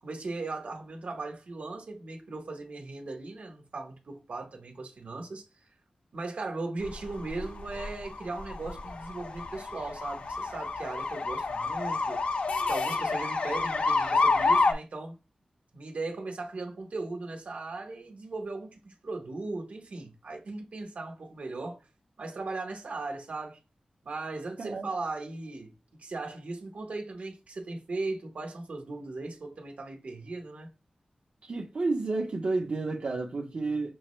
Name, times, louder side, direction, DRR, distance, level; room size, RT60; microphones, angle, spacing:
voice 1, 0.0-5.4 6.1-12.2 12.7-15.2 15.7-21.9 22.2-23.6 24.0-25.7 26.0-30.7, right 3 dB, 75° right, 1.0 m, -38 dB
sound 1, 6.8-14.7, left 3 dB, 65° left, 0.6 m, -29 dB
voice 2, 24.6-24.9 31.4-33.9, right 3 dB, 60° right, 0.7 m, -31 dB
6.1 x 2.1 x 3.1 m
wide cardioid pair, 110°, 2 cm